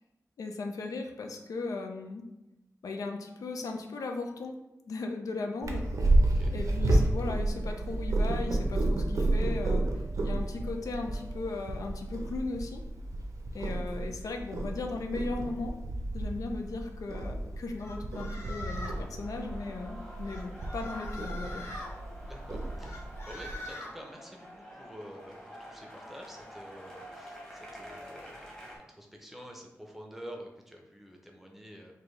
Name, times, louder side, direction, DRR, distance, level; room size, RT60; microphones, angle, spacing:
voice 1, 0.4-2.2 2.8-4.6 4.9-6.2 6.5-9.8 10.2-12.8 13.5-15.7 16.1-21.6, left 3 dB, 90° left, 4 dB, 0.5 m, -37 dB
Purr, 5.6-23.6, right 2 dB, 80° right, 0.6 m, -31 dB
voice 2, 6.2-6.5 22.2-31.9, equal, 5° right, 1 dB, 0.6 m, -48 dB
sound 1, 17.8-19.0 20.2-21.9 22.8-23.9, left 2 dB, 50° left, 0.8 m, -43 dB
sound 2, 18.7-28.8, equal, 15° left, 1.0 m, -48 dB
4.3 x 2.7 x 3.1 m, 0.94 s
wide cardioid pair, 140°, 6 cm